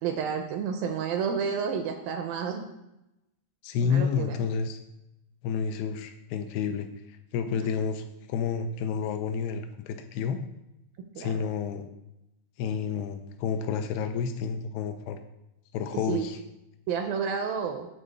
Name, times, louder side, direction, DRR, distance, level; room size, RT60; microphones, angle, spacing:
voice 1, 0.0-2.7 3.8-4.4 11.0-11.4 16.1-16.3 16.9-17.9, right 6 dB, 80° right, 5 dB, 2.1 m, -30 dB
voice 2, 3.6-4.8 5.4-10.4 11.2-11.9 12.6-15.2 15.7-16.4, left 6 dB, 90° left, 8 dB, 2.7 m, -30 dB
9.1 x 3.9 x 6.6 m, 0.90 s
omnidirectional pair, 4.6 m